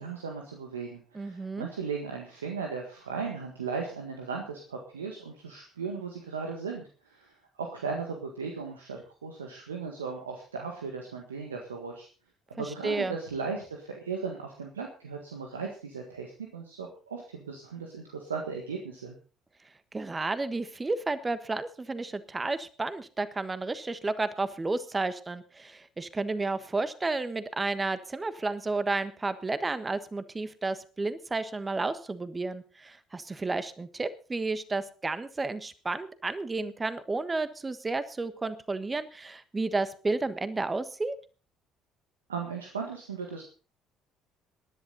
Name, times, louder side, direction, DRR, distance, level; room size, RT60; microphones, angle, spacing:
voice 1, 0.0-12.1 12.5-19.1 42.3-43.4, right 5 dB, 85° right, 1 dB, 1.6 m, -37 dB
voice 2, 1.1-1.7 12.6-13.1 19.9-41.1, right 3 dB, 25° right, 13 dB, 1.3 m, -32 dB
19.0 x 11.0 x 4.0 m, 0.37 s
hypercardioid pair, 55°, 0 cm